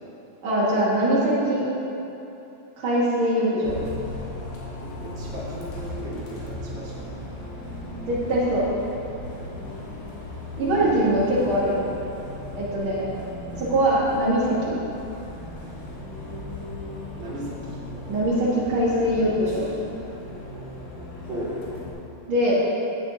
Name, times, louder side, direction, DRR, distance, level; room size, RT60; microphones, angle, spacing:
voice 1, 0.4-1.6 2.8-3.9 8.1-8.7 10.6-11.8 12.5-13.1 13.6-14.8 18.0-19.8 22.3-22.6, right 1 dB, 80° right, -9 dB, 1.1 m, -22 dB
Bus, 3.6-21.9, left 1 dB, 75° left, 3.6 m, -37 dB
voice 2, 4.6-7.2 10.6-11.4 17.1-17.8 21.2-21.5, right 1 dB, 40° right, -8 dB, 1.7 m, -36 dB
15.0 x 8.3 x 2.8 m, 3.0 s
omnidirectional pair, 5.0 m